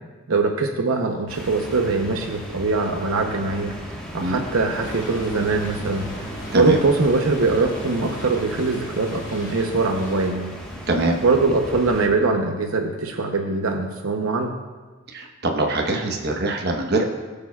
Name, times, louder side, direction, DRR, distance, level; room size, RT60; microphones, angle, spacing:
voice 1, 0.3-3.7 4.1-6.1 6.5-10.5 11.2-14.5, right 3 dB, 80° right, 3 dB, 0.8 m, -22 dB
sound 1, 1.3-12.1, equal, 5° left, 1.4 m, -36 dB
sound 2, 4.8-10.3, equal, 40° left, 1.5 m, -37 dB
voice 2, 10.9-11.2 15.1-17.1, right 2 dB, 50° right, 2 dB, 1.1 m, -23 dB
20.0 x 6.7 x 2.4 m, 1.3 s
head